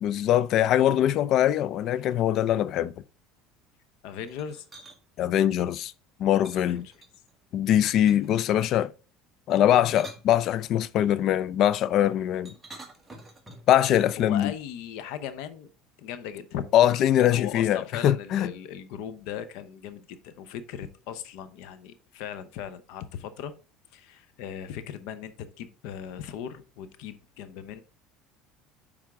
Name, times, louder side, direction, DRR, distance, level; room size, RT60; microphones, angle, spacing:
voice 1, 0.0-2.9 5.2-5.9 6.2-6.8 7.5-8.9 9.5-12.5 13.7-14.5 16.7-18.5, left 11 dB, 50° left, 0.4 m, -22 dB
voice 2, 4.0-4.6 6.6-6.8 14.2-15.7 16.0-16.6 17.2-23.5 23.9-27.8, left 9 dB, 75° left, 0.7 m, -38 dB
sound 1, 4.3-5.0 6.4-7.4 8.1-8.5 9.6-10.9 12.5-13.8, right 2 dB, 10° right, 1.4 m, -48 dB
9.6 x 3.6 x 3.6 m
cardioid pair, 125°, 0 cm